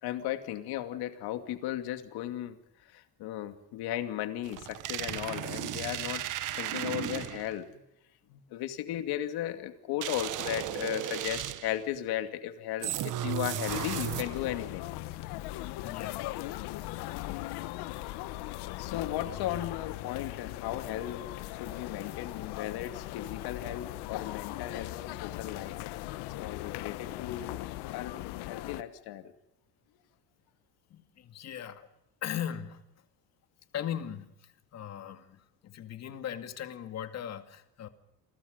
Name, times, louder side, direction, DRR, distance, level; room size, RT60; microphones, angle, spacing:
voice 1, 0.0-2.6 2.9-6.2 6.5-7.8 8.3-14.9 18.8-21.3 21.6-25.7 26.3-27.6 27.9-28.2 28.5-29.3, left 12 dB, 70° left, 8 dB, 2.5 m, -36 dB
sound 1, 4.4-7.6 10.0-11.8 12.8-14.6, right 13 dB, 50° right, 1.5 m, -35 dB
sound 2, 13.7-28.8, left 17 dB, 90° left, 1.3 m, -39 dB
voice 2, 15.8-16.3 30.9-31.9 32.2-33.0 33.7-37.9, left 9 dB, 40° left, 8 dB, 2.2 m, -39 dB
29.5 x 22.5 x 5.3 m, 0.85 s
cardioid pair, 165°, 39 cm